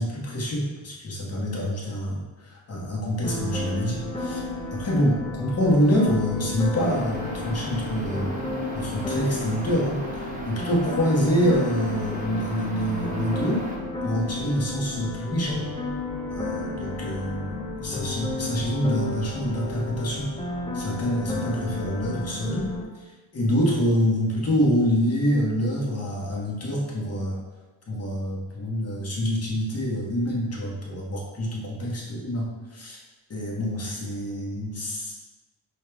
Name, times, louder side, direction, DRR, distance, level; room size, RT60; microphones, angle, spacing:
voice 1, 0.0-4.4 4.7-8.3 8.7-13.7 14.0-15.7 16.3-20.3 20.7-22.7 23.3-27.4 27.9-33.0 33.3-35.1, equal, 30° left, -4 dB, 1.0 m, -26 dB
sound 1, 3.2-22.8, left 2 dB, 15° left, 0.4 m, -33 dB
sound 2, 6.8-13.8, right 1 dB, 20° right, 0.7 m, -36 dB
5.4 x 2.3 x 3.3 m, 1.2 s
cardioid pair, 135°, 47 cm